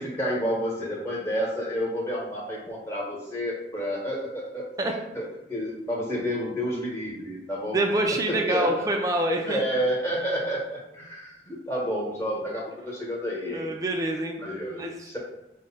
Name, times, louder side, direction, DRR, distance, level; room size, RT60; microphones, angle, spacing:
voice 1, 0.0-4.7 5.1-7.8 8.3-8.9 9.4-13.7 14.4-15.2, equal, 15° left, -4 dB, 1.0 m, -30 dB
voice 2, 7.7-9.6 13.4-14.4 14.8-15.2, right 1 dB, 20° right, 2 dB, 0.3 m, -26 dB
4.8 x 2.1 x 4.1 m, 0.89 s
head